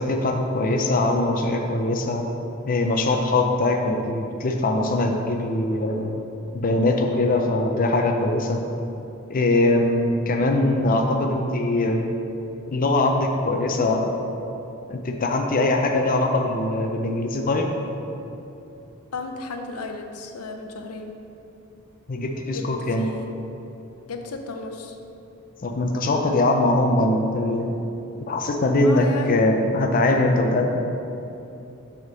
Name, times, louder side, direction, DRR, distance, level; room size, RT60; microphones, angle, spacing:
voice 1, 0.0-2.3 2.7-6.1 6.5-8.6 9.3-12.2 12.7-14.1 14.9-17.7 22.1-23.1 25.6-27.8 28.3-30.8, left 2 dB, 40° left, 3 dB, 0.5 m, -22 dB
voice 2, 19.1-21.1 22.5-22.7 23.0-23.3 24.1-25.0 28.8-29.4, left 3 dB, 85° left, 5 dB, 0.6 m, -34 dB
6.5 x 3.6 x 6.1 m, 2.9 s
head